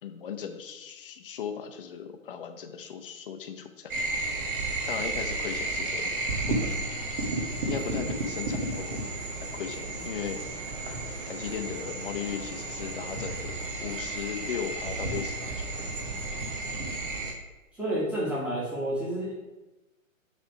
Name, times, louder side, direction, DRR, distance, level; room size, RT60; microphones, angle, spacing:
voice 1, 0.0-3.9 4.9-6.1 6.5-6.9 7.6-9.0 9.4-10.4 11.2-15.9, left 7 dB, 40° left, 6 dB, 0.8 m, -37 dB
sound 1, 3.9-17.3, right 2 dB, 40° right, 1.3 m, -32 dB
voice 2, 17.8-19.4, right 1 dB, 5° right, -7 dB, 1.5 m, -30 dB
6.5 x 3.5 x 5.7 m, 1.1 s
figure-of-eight pair, 140°, 41 cm